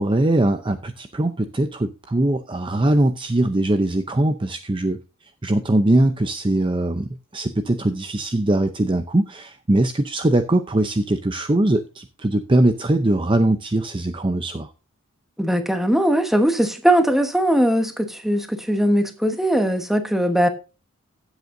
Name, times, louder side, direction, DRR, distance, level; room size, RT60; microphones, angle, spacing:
voice 1, 0.0-5.0 5.4-14.7, right 1 dB, 25° right, 0.6 m, -21 dB
voice 2, 15.4-20.5, equal, ahead, 1.2 m, -20 dB
15.5 x 8.0 x 2.6 m
head